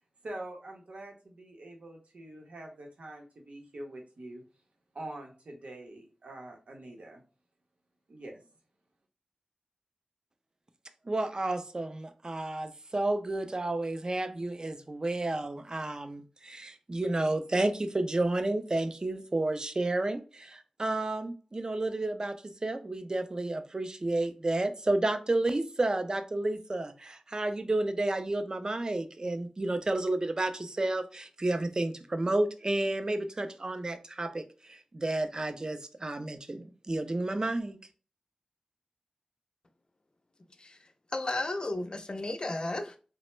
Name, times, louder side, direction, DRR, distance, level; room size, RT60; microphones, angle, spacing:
voice 1, 0.2-4.4 4.9-7.2 8.1-8.4, right 1 dB, 75° right, 0.7 m, -45 dB
voice 2, 11.1-22.4 22.6-34.4 34.9-37.8, right 2 dB, 35° right, 0.4 m, -31 dB
voice 3, 41.1-43.0, left 2 dB, 45° left, 0.4 m, -33 dB
3.3 x 2.0 x 3.0 m
wide cardioid pair, 70°, 2 cm